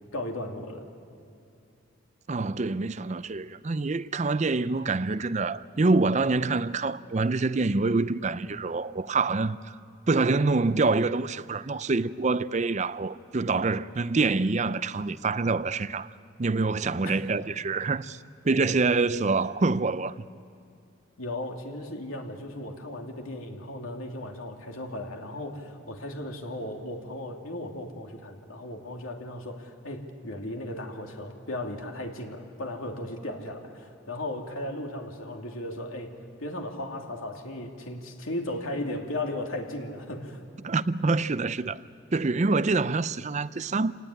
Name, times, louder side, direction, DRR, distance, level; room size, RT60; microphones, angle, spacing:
voice 1, 0.1-0.9 17.0-17.3 21.2-40.4, left 1 dB, 85° left, 2.7 m, -36 dB
voice 2, 2.3-9.7 10.1-16.1 16.4-18.2 18.4-20.1 40.6-41.8 42.1-43.9, right 3 dB, 35° right, 0.5 m, -26 dB
28.0 x 18.0 x 9.9 m
head